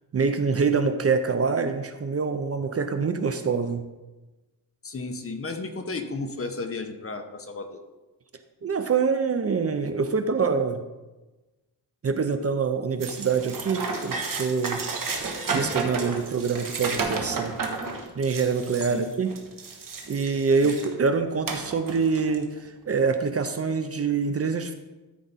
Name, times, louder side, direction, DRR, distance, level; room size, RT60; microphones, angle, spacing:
voice 1, 0.1-3.8 8.6-10.8 12.0-14.8 15.5-17.6 18.2-19.3 20.1-24.7, right 5 dB, 35° right, 8 dB, 0.6 m, -25 dB
voice 2, 4.8-7.8 18.8-19.2 20.6-20.8, left 3 dB, 35° left, 6 dB, 0.8 m, -34 dB
sound 1, 13.0-21.0 21.4-22.4, right 4 dB, 55° right, 1.3 m, -32 dB
13.0 x 4.9 x 4.1 m, 1.1 s
wide cardioid pair, 125°, 39 cm